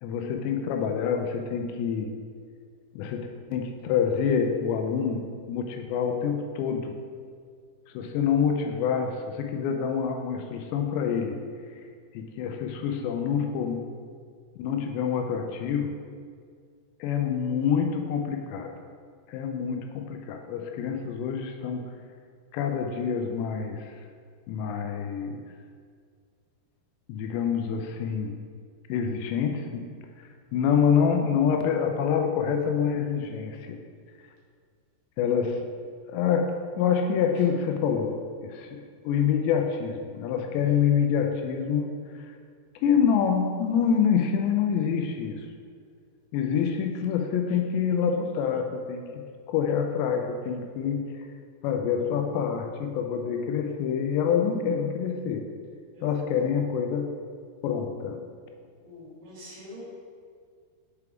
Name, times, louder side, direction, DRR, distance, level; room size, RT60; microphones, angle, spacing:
voice 1, 0.0-2.1 2.9-5.2 5.5-6.9 7.9-11.4 11.8-11.9 12.1-13.8 14.6-15.9 17.0-18.7 19.3-21.9 22.5-24.0 24.5-25.4 27.1-28.3 28.9-29.9 30.2-33.8 35.2-35.6 36.1-38.2 38.4-41.9 42.2-42.4 42.8-45.5 46.3-49.1 49.5-51.0 51.6-55.4 56.0-57.1 57.6-58.2, left 7 dB, 85° left, 4 dB, 2.7 m, -26 dB
voice 2, 40.6-41.0 55.9-56.3 58.8-59.8, left 1 dB, 60° right, -6 dB, 2.9 m, -46 dB
6.9 x 4.7 x 3.4 m, 2.1 s
omnidirectional pair, 5.1 m